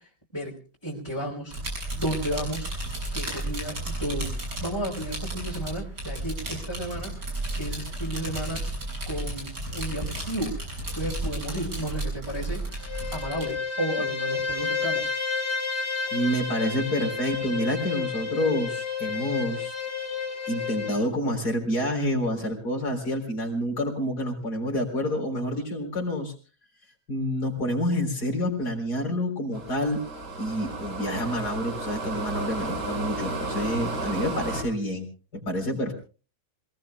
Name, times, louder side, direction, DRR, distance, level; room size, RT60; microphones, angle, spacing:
voice 1, 0.0-1.5 1.9-2.7 3.1-4.3 4.6-7.1 7.5-8.7 9.1-12.8 13.1-15.1, right 1 dB, 15° left, -4 dB, 3.6 m, -33 dB
sound 1, 1.5-13.4, right 2 dB, 80° right, 7.2 m, -33 dB
Bowed string instrument, 12.7-21.0, left 5 dB, 30° left, 2.6 m, -30 dB
voice 2, 16.1-19.7 20.5-26.3 27.1-30.0 30.4-35.1 35.3-35.9, equal, 65° left, 2 dB, 4.4 m, -28 dB
sound 2, 29.5-34.6, right 3 dB, 50° right, 2.7 m, -33 dB
27.0 x 18.5 x 2.3 m, 0.36 s
omnidirectional pair, 1.8 m